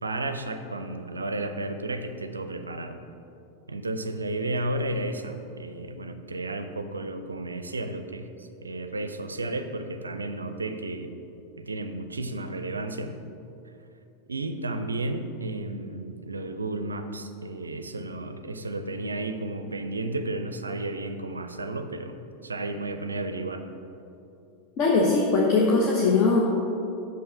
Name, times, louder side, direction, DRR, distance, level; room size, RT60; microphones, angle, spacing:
voice 1, 0.0-3.0 3.7-11.1 11.6-13.1 14.3-23.6, right 2 dB, 75° right, 8 dB, 0.4 m, -33 dB
voice 2, 24.8-26.4, left 4 dB, 40° left, -2 dB, 0.8 m, -21 dB
6.0 x 5.5 x 5.3 m, 2.8 s
figure-of-eight pair, 90°, 0 cm